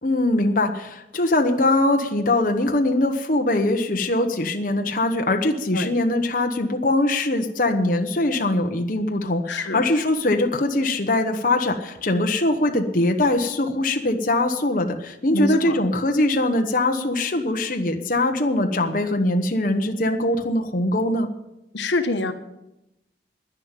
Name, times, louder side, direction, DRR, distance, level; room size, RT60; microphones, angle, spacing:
voice 1, 0.0-21.3, left 2 dB, 45° left, 4 dB, 1.1 m, -22 dB
voice 2, 9.5-9.9 15.3-15.8 21.7-22.3, left 2 dB, 80° left, 7 dB, 1.2 m, -25 dB
10.5 x 10.5 x 8.9 m, 0.90 s
head